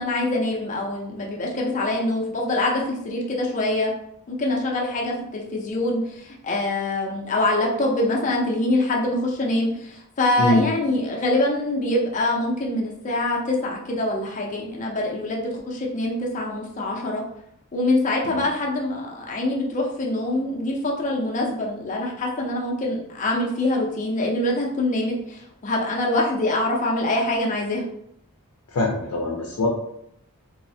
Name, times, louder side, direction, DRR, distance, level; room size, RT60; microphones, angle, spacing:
voice 1, 0.0-3.9 4.3-17.2 17.7-27.8, left 1 dB, 35° left, -2 dB, 0.5 m, -24 dB
voice 2, 28.7-29.7, left 1 dB, 90° left, -1 dB, 0.5 m, -22 dB
3.1 x 2.0 x 2.6 m, 0.75 s
head